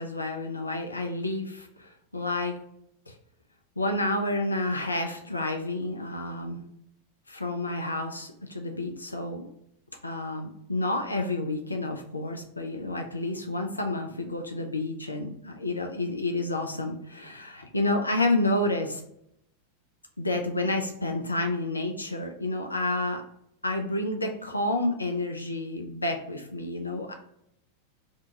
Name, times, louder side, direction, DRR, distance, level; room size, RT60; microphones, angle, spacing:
voice 1, 0.0-2.6 3.1-3.2 3.8-6.6 7.3-9.5 10.0-19.0 20.2-23.2 23.6-27.1, left 2 dB, 80° left, 3 dB, 0.3 m, -30 dB
2.6 x 2.2 x 2.7 m, 0.75 s
figure-of-eight pair, 90°, 0 cm